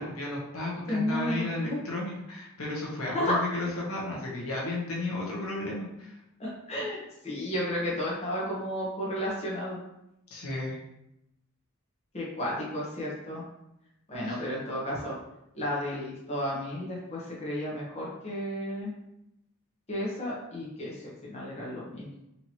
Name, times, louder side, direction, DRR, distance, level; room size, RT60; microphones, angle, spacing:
voice 1, 0.0-6.2 10.3-10.8 14.2-14.4, left 2 dB, 70° left, -4 dB, 0.9 m, -34 dB
voice 2, 0.9-1.8 3.1-3.4 6.4-9.8 12.1-13.4 14.1-15.2 15.5-18.9 19.9-22.1, left 1 dB, 30° left, -6 dB, 1.0 m, -32 dB
4.2 x 2.9 x 2.9 m, 0.85 s
head